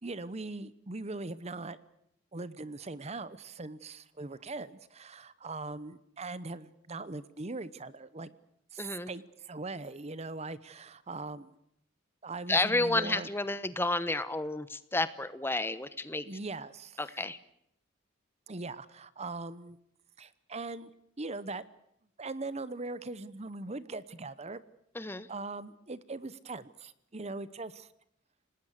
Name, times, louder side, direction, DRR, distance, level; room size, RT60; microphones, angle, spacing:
voice 1, 0.0-1.8 2.3-8.3 8.7-11.6 12.2-13.3 16.2-17.0 18.5-19.8 20.2-20.9 21.2-21.6 22.2-24.6 25.3-27.9, right 3 dB, 35° right, 16 dB, 0.9 m, -40 dB
voice 2, 8.8-9.1 12.5-16.3 17.0-17.4 24.9-25.3, left 2 dB, 10° left, 14 dB, 1.0 m, -31 dB
29.5 x 19.0 x 6.6 m, 0.75 s
head